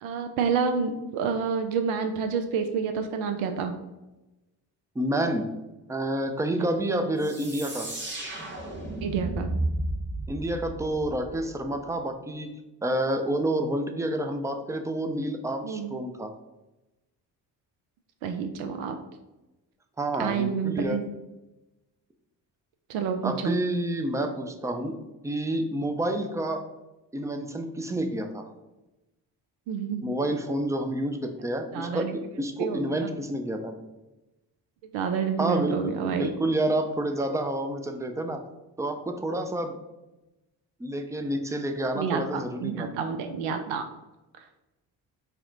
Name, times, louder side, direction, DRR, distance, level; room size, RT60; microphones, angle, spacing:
voice 1, 0.0-3.7 6.5-6.7 9.0-9.5 15.6-15.9 18.2-19.0 20.2-21.0 22.9-23.6 29.7-30.0 31.7-32.1 32.6-33.1 34.9-36.3 41.9-43.8, right 6 dB, 70° right, 7 dB, 0.5 m, -29 dB
voice 2, 5.0-5.5 5.9-7.9 10.3-12.5 12.8-16.3 20.0-21.0 23.2-25.0 25.2-26.6 27.1-28.5 30.0-33.7 35.4-38.4 38.8-39.8 40.8-42.9, right 1 dB, 5° right, 6 dB, 0.4 m, -29 dB
sound 1, 7.2-11.8, right 1 dB, 20° right, 1.1 m, -33 dB
4.2 x 2.1 x 3.8 m, 1.0 s
hypercardioid pair, 45°, 50 cm